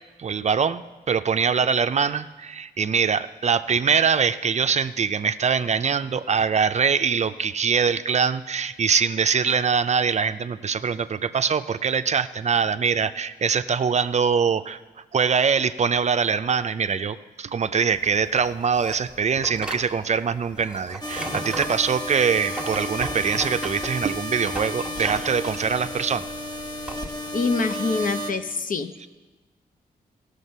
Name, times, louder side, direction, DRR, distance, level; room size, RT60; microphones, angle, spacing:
voice 1, 0.2-14.8 15.1-26.3, right 6 dB, 45° right, 11 dB, 0.4 m, -23 dB
sound 1, 17.9-27.1, right 2 dB, 5° right, 1.4 m, -36 dB
sound 2, 21.0-28.3, equal, 25° left, 1.2 m, -32 dB
voice 2, 27.3-29.1, left 4 dB, 55° left, 8 dB, 0.8 m, -25 dB
16.0 x 6.6 x 5.4 m, 1.2 s
cardioid pair, 65°, 16 cm